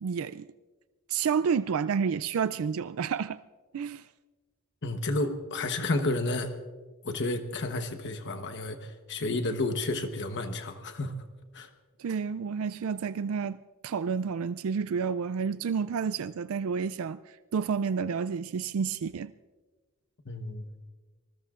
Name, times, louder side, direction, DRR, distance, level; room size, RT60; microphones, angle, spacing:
voice 1, 0.0-0.5 1.1-3.4 3.7-4.1 12.0-19.3, right 6 dB, 70° right, 0.4 m, -30 dB
voice 2, 4.8-6.5 7.0-11.2 11.5-11.7 20.2-20.7, left 2 dB, 55° left, 1.1 m, -31 dB
26.5 x 20.5 x 2.5 m
head